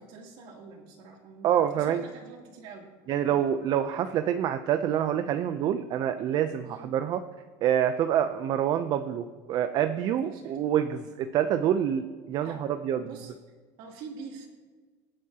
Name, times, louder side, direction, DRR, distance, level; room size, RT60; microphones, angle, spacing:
voice 1, 0.0-1.5 1.7-2.9 3.3-3.5 6.6-6.9 10.2-10.6 12.4-12.6 13.0-13.3 13.8-14.5, right 5 dB, 60° right, 0 dB, 2.9 m, -45 dB
voice 2, 1.4-2.0 3.1-7.2 7.6-12.6 12.8-13.1, right 10 dB, 45° right, 9 dB, 0.6 m, -26 dB
25.0 x 8.4 x 2.9 m, 1.4 s
supercardioid pair, 135°, 10 cm